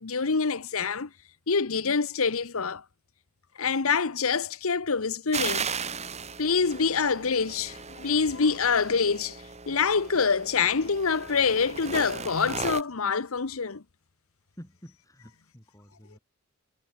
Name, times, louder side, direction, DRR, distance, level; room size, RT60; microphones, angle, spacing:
voice 1, 0.0-1.1 1.5-2.8 3.6-5.7 6.4-13.8, left 5 dB, 70° left, 1.0 m, -26 dB
sound 1, 5.3-12.8, right 5 dB, 30° right, 2.9 m, -36 dB
voice 2, 14.6-16.2, equal, 15° left, 5.2 m, -49 dB
head